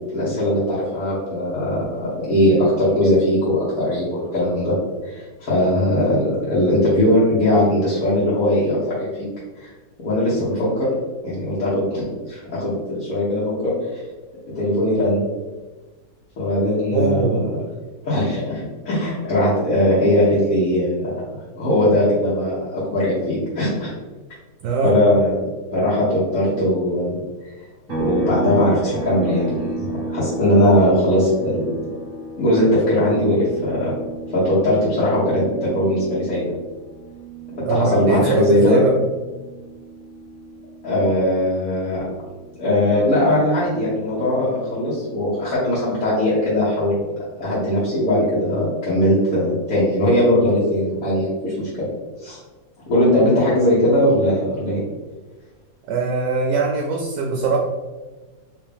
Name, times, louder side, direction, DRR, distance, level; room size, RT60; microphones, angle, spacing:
voice 1, 0.1-4.8 5.0-9.1 9.6-9.7 10.0-10.9 11.2-13.7 14.5-15.2 16.4-17.4 18.0-21.1 21.5-23.9 24.8-27.1 28.0-31.6 32.4-33.9 34.3-36.4 37.6-38.8 40.8-42.0 42.6-47.0 47.4-51.9 52.2-52.4 52.9-54.8, left 1 dB, 55° left, -10 dB, 1.5 m, -19 dB
voice 2, 16.9-17.4 24.6-24.9 37.6-39.0 55.9-57.6, right 4 dB, 75° right, 0 dB, 1.1 m, -21 dB
sound 1, 27.9-41.4 41.8-44.0, right 3 dB, 50° right, 1.2 m, -33 dB
3.5 x 2.8 x 3.4 m, 1.2 s
omnidirectional pair, 2.0 m